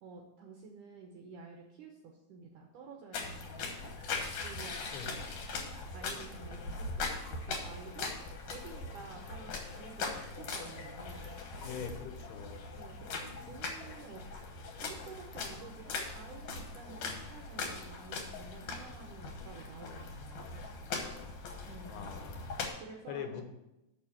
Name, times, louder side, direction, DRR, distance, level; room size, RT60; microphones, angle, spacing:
voice 1, 0.0-3.8 4.4-5.3 5.9-8.1 8.5-10.1 10.4-11.4 12.8-14.2 14.8-20.9 21.6-22.1 22.8-23.4, right 4 dB, 75° right, 1 dB, 1.9 m, -51 dB
sound 1, 3.1-22.7, left 4 dB, 60° left, 2.1 m, -41 dB
voice 2, 11.6-12.7 21.8-22.6 23.1-23.4, left 7 dB, 80° left, 6 dB, 2.9 m, -43 dB
6.8 x 6.1 x 7.1 m, 0.92 s
omnidirectional pair, 4.6 m